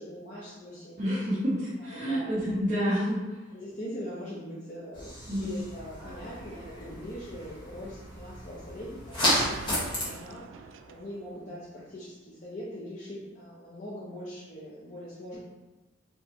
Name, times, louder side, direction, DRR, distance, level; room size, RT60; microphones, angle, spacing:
voice 1, 0.0-1.2 1.9-2.3 3.5-15.4, equal, 40° left, -8 dB, 0.8 m, -42 dB
voice 2, 1.0-1.6 1.8-3.2 5.3-5.4, equal, 40° right, -11 dB, 1.2 m, -28 dB
sound 1, 4.9-10.0, equal, 25° left, 1.5 m, -33 dB
sound 2, 9.1-12.0, right 5 dB, 85° right, 0.3 m, -44 dB
5.4 x 3.1 x 3.0 m, 1.2 s
head